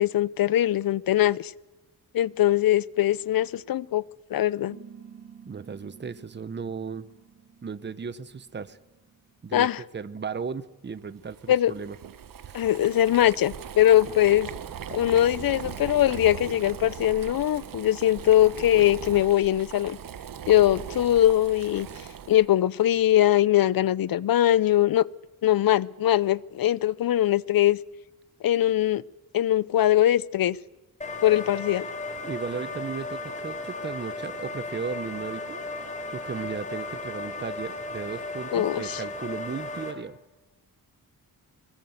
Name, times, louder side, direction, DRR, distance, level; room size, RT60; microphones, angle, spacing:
voice 1, 0.0-1.5 2.1-4.0 4.3-4.8 9.5-9.8 11.5-11.7 12.5-14.5 14.9-20.0 20.5-21.9 22.3-25.0 25.4-27.8 28.4-29.0 29.3-30.6 31.2-31.9 38.5-39.0, left 12 dB, 70° left, 21 dB, 0.6 m, -21 dB
sound 1, 4.7-9.6, right 7 dB, 80° right, 3.3 m, -51 dB
voice 2, 5.5-7.1 7.6-8.8 9.4-12.0 32.2-35.6 36.1-40.2, right 5 dB, 30° right, 14 dB, 0.9 m, -35 dB
Boiling, 11.2-22.5, right 9 dB, 65° right, 1.0 m, -39 dB
sound 2, 31.0-39.9, left 2 dB, 20° left, 3.8 m, -35 dB
23.0 x 19.0 x 8.0 m, 1.1 s
wide cardioid pair, 145°, 36 cm